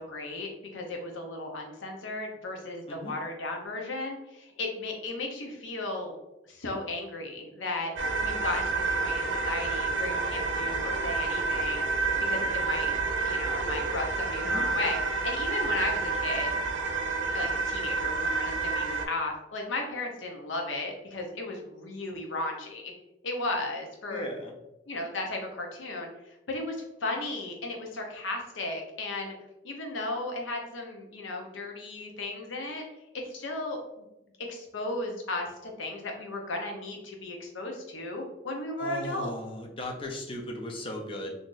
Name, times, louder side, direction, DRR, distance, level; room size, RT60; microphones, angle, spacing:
voice 1, 0.0-6.2 6.5-7.9 8.2-11.9 12.2-12.9 13.2-16.5 17.3-22.9 23.2-24.2 24.9-26.1 26.5-26.8 27.0-29.3 29.6-32.8 33.1-34.0 34.4-39.3, left 2 dB, 85° left, 1 dB, 0.7 m, -35 dB
sound 1, 8.0-19.1, right 3 dB, 75° right, 0.5 m, -29 dB
voice 2, 24.1-24.5 38.8-41.4, left 1 dB, 30° left, 2 dB, 0.5 m, -37 dB
3.8 x 2.6 x 2.5 m, 0.94 s
head